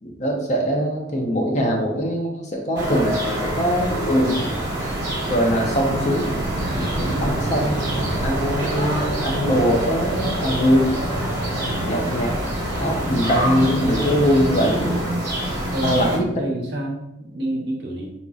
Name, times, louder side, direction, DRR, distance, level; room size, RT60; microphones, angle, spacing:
voice 1, 0.0-4.5 5.3-6.3 7.0-7.9 8.2-10.9 11.8-12.3 12.8-15.0 15.8-16.3, equal, 35° left, 0 dB, 0.6 m, -22 dB
sound 1, 2.8-16.2, right 1 dB, 15° right, 0.9 m, -26 dB
sound 2, 2.8-9.0, right 1 dB, 40° right, 0.3 m, -32 dB
sound 3, 6.6-15.0, left 1 dB, 85° left, 0.4 m, -34 dB
voice 2, 15.7-18.1, right 1 dB, 55° right, -1 dB, 0.7 m, -29 dB
3.9 x 2.8 x 2.4 m, 0.85 s
head